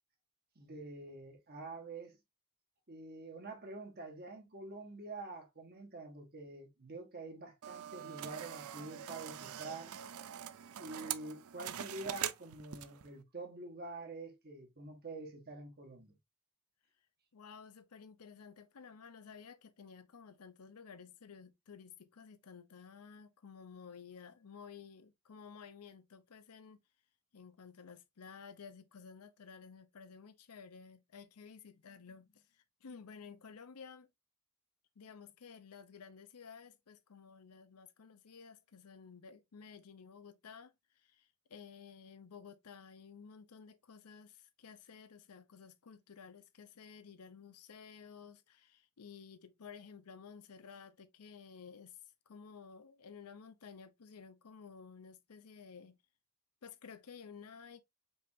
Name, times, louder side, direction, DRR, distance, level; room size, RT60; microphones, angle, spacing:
voice 1, 0.5-2.2 2.9-9.9 10.8-16.1, right 2 dB, 45° right, 1.6 m, -47 dB
sound 1, 7.6-13.1, right 10 dB, 70° right, 0.4 m, -43 dB
voice 2, 17.3-26.8 27.3-34.1 35.0-52.0 52.3-56.0 56.6-57.8, left 6 dB, 85° left, 0.6 m, -54 dB
5.3 x 3.5 x 2.7 m
head